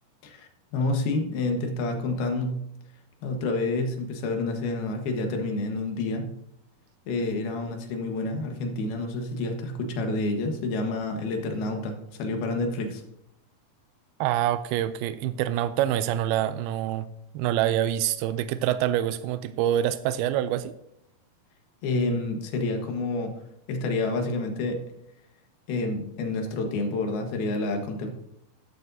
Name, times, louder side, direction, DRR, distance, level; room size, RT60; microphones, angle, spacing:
voice 1, 0.2-2.6 3.2-6.3 7.1-13.0 21.8-23.3 23.7-24.8 25.7-28.1, left 2 dB, 80° left, 4 dB, 3.3 m, -28 dB
voice 2, 14.2-17.1 17.3-20.7, right 12 dB, 90° right, 13 dB, 2.5 m, -26 dB
12.5 x 10.5 x 2.7 m, 0.77 s
omnidirectional pair, 4.3 m